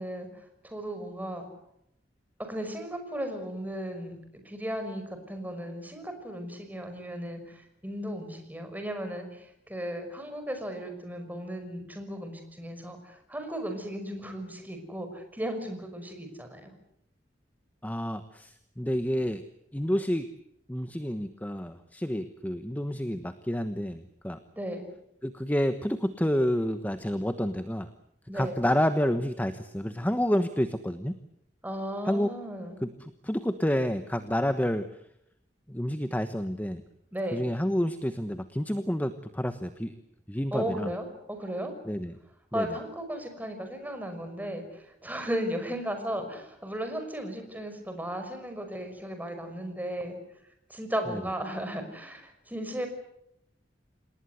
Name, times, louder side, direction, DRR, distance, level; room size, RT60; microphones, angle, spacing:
voice 1, 0.0-1.5 2.4-16.7 24.5-24.9 28.3-28.6 31.6-32.8 37.1-37.5 40.5-41.7 42.5-50.2 50.7-52.9, equal, 10° right, 6 dB, 5.7 m, -35 dB
voice 2, 17.8-19.4 19.7-20.3 20.7-24.4 25.2-27.9 28.3-31.1 32.0-32.3 32.8-34.9 35.7-36.8 37.3-40.0 40.3-40.9 41.8-42.2 42.5-42.7 51.1-51.2, equal, 10° left, 10 dB, 1.1 m, -29 dB
28.0 x 19.5 x 8.1 m, 0.76 s
head